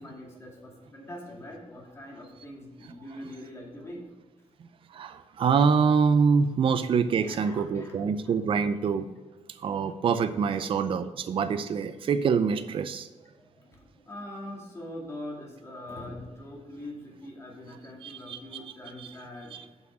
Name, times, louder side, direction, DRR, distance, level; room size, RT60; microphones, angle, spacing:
voice 1, 0.0-4.1 7.2-8.0 10.5-10.8 13.4-19.6, left 1 dB, 20° left, -2 dB, 2.3 m, -43 dB
voice 2, 4.9-9.1 9.6-13.1 18.0-18.4 19.0-19.1 19.5-19.6, right 6 dB, 45° right, 10 dB, 0.5 m, -25 dB
7.7 x 6.0 x 6.2 m, 1.2 s
wide cardioid pair, 160°, 12 cm